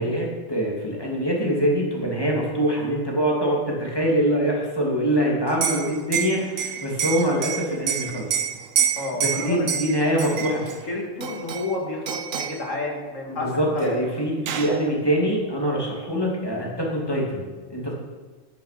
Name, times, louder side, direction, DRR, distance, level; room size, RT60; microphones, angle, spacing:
voice 1, 0.0-8.3 9.1-10.6 13.3-17.4 17.7-17.9, equal, 20° left, -2 dB, 2.8 m, -24 dB
Liquid, 5.5-10.8 11.2-11.8 12.1-12.6 13.8-13.9 14.2-14.8, right 8 dB, 85° right, 1.2 m, -28 dB
voice 2, 9.0-9.7 9.9-14.1, left 2 dB, 75° left, 0 dB, 2.7 m, -31 dB
10.5 x 10.5 x 5.9 m, 1.3 s
omnidirectional pair, 1.3 m